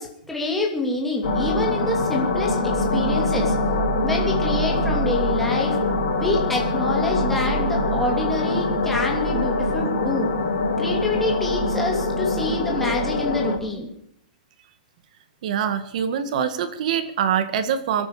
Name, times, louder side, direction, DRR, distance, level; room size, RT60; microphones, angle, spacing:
voice 1, 0.0-3.5 4.0-5.8 6.1-10.3 10.8-13.9, left 2 dB, 5° left, -1 dB, 2.7 m, -27 dB
sound 1, 1.2-13.6, left 2 dB, 70° left, 4.7 m, -23 dB
voice 2, 15.4-18.1, right 8 dB, 55° right, 11 dB, 1.8 m, -24 dB
26.0 x 9.2 x 5.0 m, 0.70 s
hypercardioid pair, 160°, 5 cm